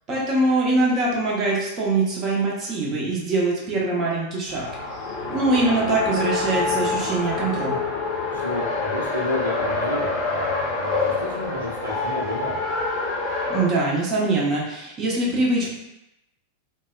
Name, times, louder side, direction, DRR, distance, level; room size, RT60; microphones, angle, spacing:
voice 1, 0.1-4.7 5.3-7.8 13.5-15.7, right 2 dB, 30° right, -3 dB, 0.7 m, -23 dB
Race car auto racing, 4.5-13.7, left 3 dB, 35° left, 0.6 m, -26 dB
voice 2, 8.3-12.7, left 1 dB, 80° right, -7 dB, 0.8 m, -31 dB
2.7 x 2.1 x 2.3 m, 0.90 s
figure-of-eight pair, 90°, 0 cm